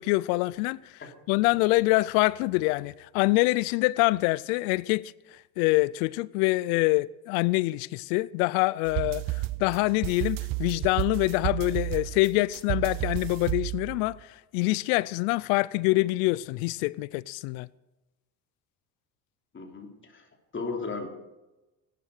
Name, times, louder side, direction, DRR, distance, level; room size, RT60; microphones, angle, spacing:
voice 1, 0.0-1.0 1.3-5.1 5.6-17.7, left 21 dB, 85° left, 0.5 m, -25 dB
sound 1, 8.9-14.1, right 18 dB, 55° right, 0.7 m, -32 dB
voice 2, 19.5-21.1, left 4 dB, 30° left, 3.1 m, -36 dB
16.5 x 11.5 x 6.6 m
supercardioid pair, 90°, 40 cm